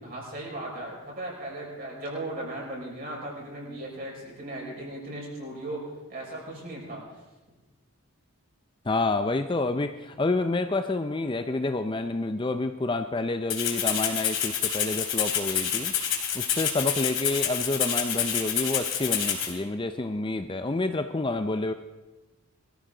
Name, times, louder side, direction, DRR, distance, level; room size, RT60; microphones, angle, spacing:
voice 1, 0.0-5.8 6.1-7.2, right 1 dB, 40° right, -3 dB, 5.5 m, -37 dB
voice 2, 8.9-15.9 16.3-21.7, left 2 dB, 20° left, 8 dB, 0.4 m, -28 dB
Rattle (instrument), 13.5-19.5, left 9 dB, 55° left, 2.8 m, -28 dB
22.5 x 14.0 x 3.9 m, 1.1 s
head